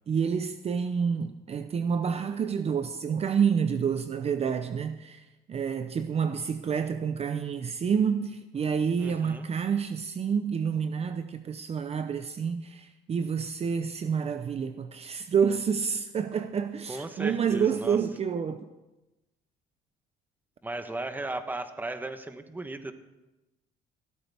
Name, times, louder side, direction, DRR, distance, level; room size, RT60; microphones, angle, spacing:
voice 1, 0.1-18.7, right 6 dB, 40° right, 0.7 m, -28 dB
voice 2, 9.0-9.5 16.9-18.0 20.6-22.9, right 2 dB, 10° right, 1.1 m, -36 dB
16.5 x 13.0 x 3.5 m
cardioid pair, 110°, 17 cm